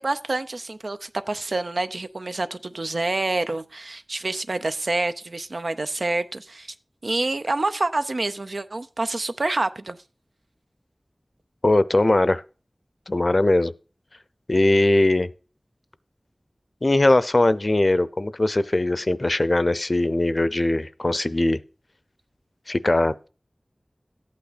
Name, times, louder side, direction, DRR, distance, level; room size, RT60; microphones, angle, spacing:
voice 1, 0.0-6.7 7.0-10.0, right 2 dB, 75° right, 0.6 m, -27 dB
voice 2, 11.6-12.4 13.1-13.7 14.5-15.3 16.8-21.6 22.7-23.1, left 2 dB, 50° left, 0.6 m, -20 dB
13.5 x 8.6 x 4.1 m
wide cardioid pair, 55°, 0 cm